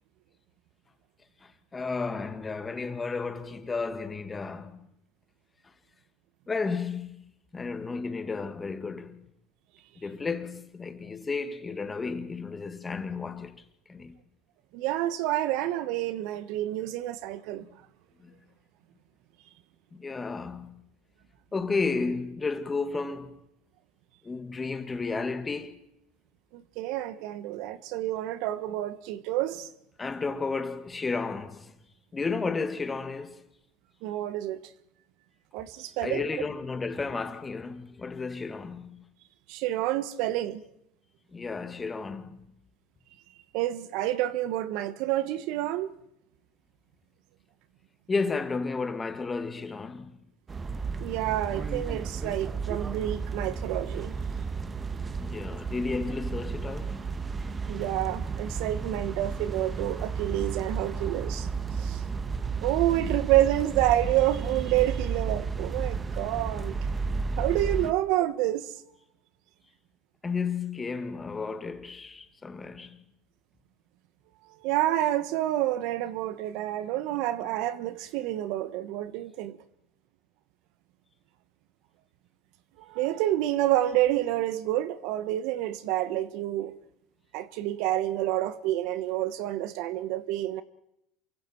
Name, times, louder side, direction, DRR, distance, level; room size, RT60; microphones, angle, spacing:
voice 1, 1.4-4.8 6.5-7.1 7.5-9.3 10.0-13.6 13.9-14.2 18.2-18.4 19.9-20.8 21.5-23.4 24.2-25.8 30.0-31.8 32.1-33.4 36.0-39.1 41.3-42.5 48.1-50.2 55.2-57.0 62.9-63.2 70.2-73.0, left 4 dB, 20° left, 2.2 m, -33 dB
voice 2, 14.7-17.7 26.5-29.7 34.0-34.6 35.5-36.3 39.5-40.6 43.5-45.9 51.0-54.1 57.7-61.5 61.8-62.0 62.6-66.8 67.4-68.7 74.6-79.6 82.8-86.7 87.3-90.6, right 14 dB, 70° right, 1.2 m, -28 dB
sound 1, 50.5-67.9, right 5 dB, 25° right, 1.5 m, -33 dB
28.0 x 24.0 x 4.6 m
hypercardioid pair, 85°, 0 cm